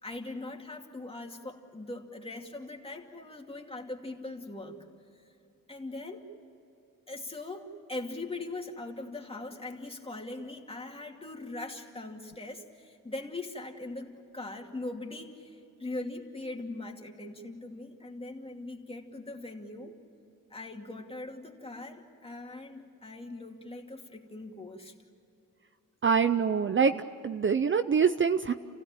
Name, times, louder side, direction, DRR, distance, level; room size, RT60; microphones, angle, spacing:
voice 1, 0.0-4.8 5.7-6.3 7.1-20.0 20.5-24.9, left 2 dB, 15° left, 1 dB, 2.5 m, -41 dB
voice 2, 26.0-28.5, right 6 dB, 35° right, 10 dB, 0.6 m, -25 dB
29.5 x 16.0 x 8.9 m, 2.8 s
wide cardioid pair, 120°, 33 cm